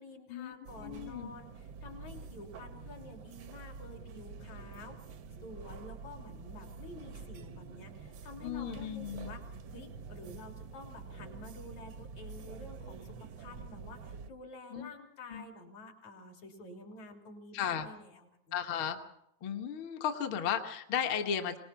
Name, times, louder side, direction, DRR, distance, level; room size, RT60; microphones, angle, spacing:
voice 1, 0.0-5.2 5.4-18.8, left 2 dB, 70° left, 2 dB, 4.6 m, -50 dB
sound 1, 0.6-14.3, right 4 dB, 80° right, 1.0 m, -47 dB
voice 2, 0.8-1.3 8.4-9.3 14.7-14.9 15.3-15.4 17.5-17.9 18.5-19.0 19.4-21.6, left 8 dB, 55° left, 4 dB, 1.7 m, -35 dB
24.5 x 19.5 x 5.8 m, 0.78 s
omnidirectional pair, 3.4 m